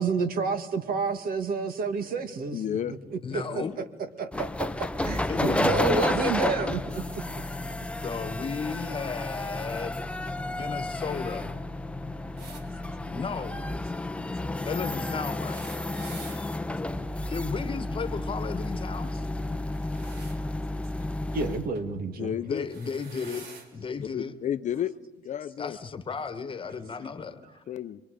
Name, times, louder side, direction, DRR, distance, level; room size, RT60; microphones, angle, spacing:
voice 1, 0.0-7.2 21.3-22.4, right 4 dB, 60° right, 9 dB, 1.8 m, -30 dB
voice 2, 2.5-3.0 3.5-3.7 22.2-22.7 24.1-24.9 25.2-25.8 27.7-28.0, left 10 dB, 45° left, 13 dB, 0.6 m, -31 dB
voice 3, 3.2-3.7 5.3-6.4 8.0-10.0 10.5-11.5 13.1-13.6 14.6-15.6 17.3-19.3 22.4-23.5 23.7-24.3 25.6-27.6, left 5 dB, 30° left, 10 dB, 1.4 m, -34 dB
sound 1, 4.3-21.7, left 2 dB, 5° left, 0.7 m, -31 dB
sound 2, 12.4-12.6 15.3-16.4 19.6-20.4 21.7-22.0 22.6-23.7 24.7-24.8 26.0-26.1, right 4 dB, 75° right, 3.3 m, -47 dB
26.5 x 23.0 x 5.1 m, 1.1 s
cardioid pair, 110°, 17 cm